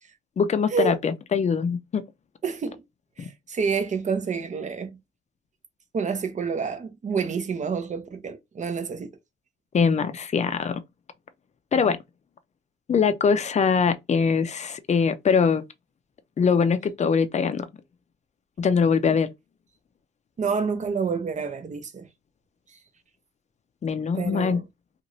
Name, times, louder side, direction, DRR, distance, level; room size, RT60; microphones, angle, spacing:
voice 1, 0.4-2.0 3.2-3.3 9.7-10.8 11.7-12.0 12.9-15.6 16.4-17.7 18.6-19.3 23.8-24.6, left 6 dB, 35° left, 0.5 m, -22 dB
voice 2, 2.4-2.8 3.2-5.0 5.9-9.1 20.4-22.1 24.1-24.6, right 5 dB, 35° right, 0.7 m, -28 dB
2.6 x 2.5 x 3.0 m
cardioid pair, 90°, 20 cm